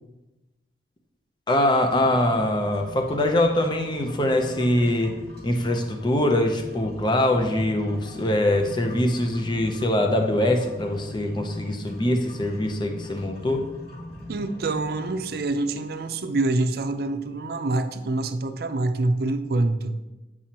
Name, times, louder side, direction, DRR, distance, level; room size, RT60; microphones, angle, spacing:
voice 1, 1.5-5.1 5.4-13.7, left 1 dB, 25° left, 4 dB, 0.6 m, -23 dB
sound 1, 1.7-17.7, equal, 60° left, 2.7 m, -42 dB
voice 2, 14.3-20.0, right 2 dB, 60° right, 8 dB, 0.5 m, -26 dB
9.0 x 6.1 x 2.9 m, 1.1 s
head